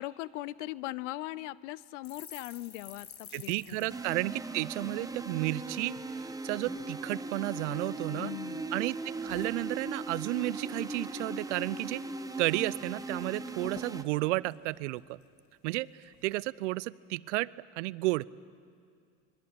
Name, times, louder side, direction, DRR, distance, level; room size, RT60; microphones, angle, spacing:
voice 1, 0.0-3.9 8.1-8.7, left 17 dB, 75° left, 21 dB, 0.8 m, -40 dB
sound 1, 2.0-5.6 5.9-6.1 6.4-7.0 7.5-8.3 8.6-10.3 10.6-10.8 11.1-11.7 12.0-12.1 12.4-13.1 13.3-13.4 13.6-15.5 16.0-16.3, left 8 dB, 50° left, 2.4 m, -53 dB
voice 2, 3.3-8.3 8.7-9.0 9.2-12.0 12.4-15.2 15.6-18.3, right 20 dB, 75° right, 21 dB, 0.7 m, -32 dB
sound 2, 3.9-14.0, right 3 dB, 10° right, 1.4 m, -39 dB
26.0 x 21.5 x 8.8 m, 2.2 s
hypercardioid pair, 80°, 37 cm